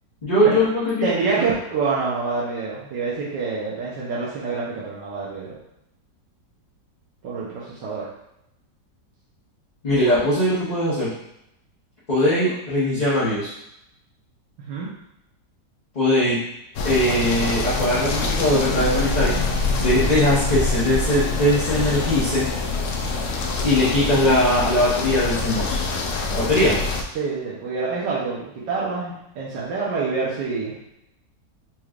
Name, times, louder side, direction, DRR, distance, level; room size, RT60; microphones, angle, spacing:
voice 1, 0.2-1.1 9.8-11.1 12.1-13.5 15.9-16.4 16.8-19.3 19.8-22.5 23.6-25.8 26.3-26.8, left 1 dB, 30° left, -11 dB, 1.0 m, -20 dB
voice 2, 1.0-5.6 7.2-8.1 12.4-12.5 14.7-14.9 27.1-30.7, right 4 dB, 90° right, -7 dB, 1.5 m, -26 dB
sound 1, 16.7-27.0, left 3 dB, 75° left, 0.7 m, -25 dB
4.6 x 3.2 x 2.4 m, 0.83 s
omnidirectional pair, 1.8 m